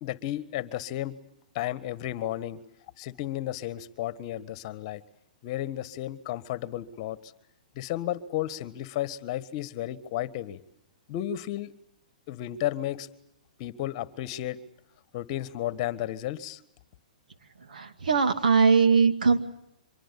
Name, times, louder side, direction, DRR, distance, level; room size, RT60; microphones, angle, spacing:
voice 1, 0.0-1.2 1.5-2.6 3.0-5.0 5.4-7.3 7.7-10.6 11.1-11.7 12.3-13.1 13.6-14.6 15.1-16.6, left 13 dB, 45° left, 15 dB, 1.5 m, -33 dB
voice 2, 17.6-19.4, right 5 dB, 85° right, 7 dB, 2.5 m, -21 dB
24.5 x 23.0 x 8.4 m, 0.74 s
hypercardioid pair, 135°, 4 cm